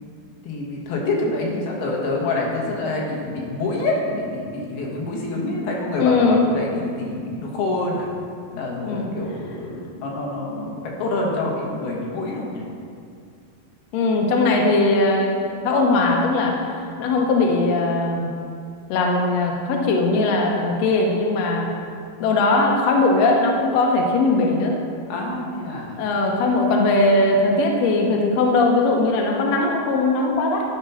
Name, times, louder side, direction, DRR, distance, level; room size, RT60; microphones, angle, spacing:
voice 1, 0.4-8.1 8.5-12.6 25.1-26.0, left 2 dB, 70° left, -2 dB, 3.2 m, -26 dB
voice 2, 6.0-6.4 8.7-9.1 13.9-15.4 15.6-16.5 17.0-18.3 18.9-21.7 22.2-24.7 26.0-30.6, left 2 dB, 90° left, 0 dB, 1.4 m, -19 dB
11.5 x 5.2 x 5.6 m, 2.3 s
omnidirectional pair, 4.7 m